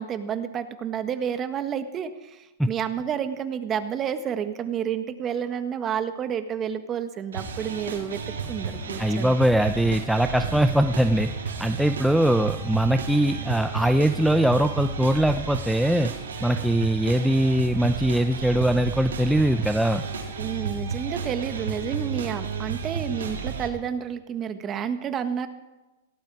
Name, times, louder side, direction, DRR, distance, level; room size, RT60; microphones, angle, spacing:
voice 1, 0.0-8.2 8.5-9.4 20.4-25.5, right 8 dB, 25° right, 9 dB, 1.5 m, -30 dB
sound 1, 7.3-23.7, right 5 dB, 90° right, 3.4 m, -32 dB
voice 2, 9.0-11.3 11.6-16.1 16.4-20.0, right 1 dB, ahead, 7 dB, 0.6 m, -22 dB
17.5 x 17.0 x 4.9 m, 1.1 s
hypercardioid pair, 130°, 0 cm